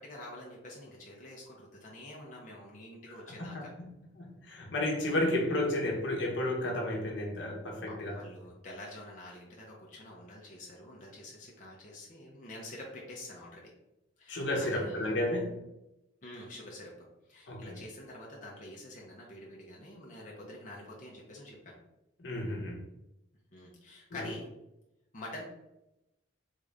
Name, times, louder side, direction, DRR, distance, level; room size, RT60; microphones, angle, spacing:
voice 1, 0.0-3.7 5.1-5.6 7.9-13.7 14.2-15.2 16.2-16.9 17.3-21.8 23.5-24.5 25.1-25.4, left 1 dB, 40° left, -3 dB, 0.7 m, -47 dB
voice 2, 3.3-3.9 4.2-8.2 14.3-15.6 17.5-17.8 22.2-22.8 24.1-24.3, left 1 dB, 75° left, -1 dB, 0.9 m, -32 dB
3.6 x 2.5 x 3.3 m, 0.93 s
head